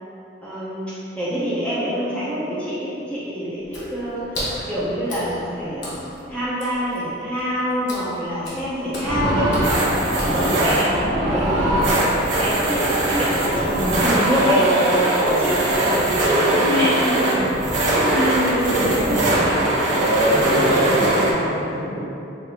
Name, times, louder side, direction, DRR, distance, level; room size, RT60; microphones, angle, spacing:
voice 1, 0.4-9.6 10.2-12.0 12.3-14.7 15.2-17.5 18.1-19.5 20.7-21.4, equal, 5° left, -10 dB, 0.6 m, -26 dB
Water / Splash splatter, 3.6-10.9, equal, 65° left, 1.1 m, -35 dB
sound 1, 9.0-21.3, right 1 dB, 75° right, 1.0 m, -20 dB
voice 2, 18.8-19.9 20.5-22.0, equal, 45° right, -10 dB, 1.5 m, -30 dB
5.6 x 2.5 x 2.8 m, 2.9 s
head